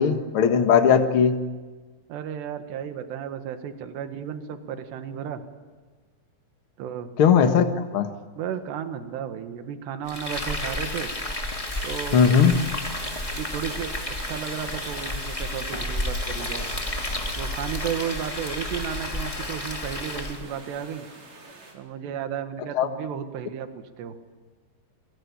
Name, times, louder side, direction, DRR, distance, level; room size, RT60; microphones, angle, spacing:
voice 1, 0.0-1.4 7.2-7.7 7.9-8.1 12.1-12.6 22.7-22.9, left 7 dB, 70° left, 7 dB, 1.2 m, -18 dB
voice 2, 2.1-5.4 6.8-7.1 7.4-7.5 8.4-11.1 11.8-12.2 13.3-13.9 14.2-16.7 17.4-21.1 21.7-24.2, right 8 dB, 75° right, 7 dB, 3.8 m, -33 dB
Frying (food), 10.1-20.4, left 1 dB, 15° left, 1.2 m, -31 dB
sound 1, 11.7-21.7, right 3 dB, 55° right, 6.5 m, -45 dB
28.5 x 23.5 x 8.5 m, 1.3 s
omnidirectional pair, 5.1 m